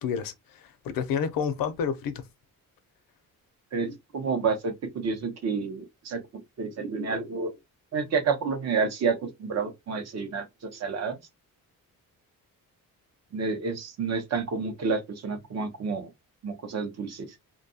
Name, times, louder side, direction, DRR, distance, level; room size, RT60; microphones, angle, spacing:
voice 1, 0.0-2.2, left 7 dB, 75° left, 0.5 m, -30 dB
voice 2, 3.7-7.5 7.9-11.2 13.3-16.1 16.4-17.3, right 5 dB, 50° right, 0.7 m, -30 dB
2.6 x 2.2 x 2.6 m
wide cardioid pair, 180°, 35 cm